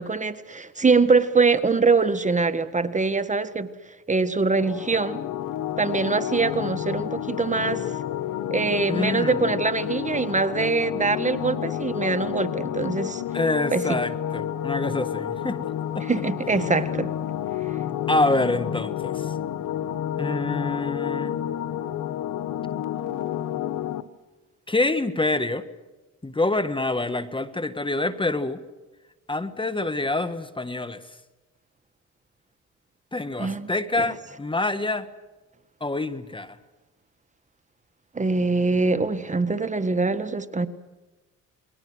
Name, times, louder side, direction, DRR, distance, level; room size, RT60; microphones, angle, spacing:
voice 1, 0.0-3.7 4.1-5.2 5.8-7.9 8.5-13.2 13.7-14.0 16.0-17.1 33.4-33.7 34.0-34.1 38.1-40.7, right 4 dB, 25° right, 11 dB, 1.6 m, -23 dB
sound 1, 4.6-24.0, left 11 dB, 85° left, 1.2 m, -30 dB
voice 2, 8.9-9.5 13.3-15.7 15.9-16.0 18.1-19.3 20.2-21.3 24.7-25.6 26.2-28.6 29.3-31.0 33.1-35.1 35.8-36.6, left 2 dB, 15° left, 11 dB, 1.6 m, -26 dB
29.0 x 22.0 x 6.3 m, 1.2 s
cardioid pair, 90°, 30 cm